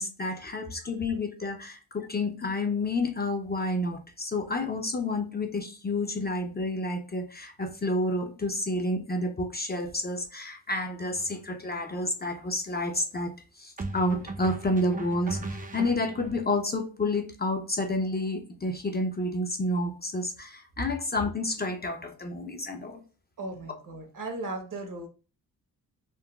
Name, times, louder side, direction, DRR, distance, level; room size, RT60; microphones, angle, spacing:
voice 1, 0.0-23.0, left 2 dB, 25° left, 3 dB, 0.5 m, -30 dB
sound 1, 11.1-11.4 13.8-16.4, right 3 dB, 20° right, 0.5 m, -37 dB
voice 2, 23.4-25.1, right 2 dB, 55° right, 4 dB, 1.0 m, -37 dB
3.8 x 2.1 x 2.2 m, 0.36 s
cardioid pair, 65°, 38 cm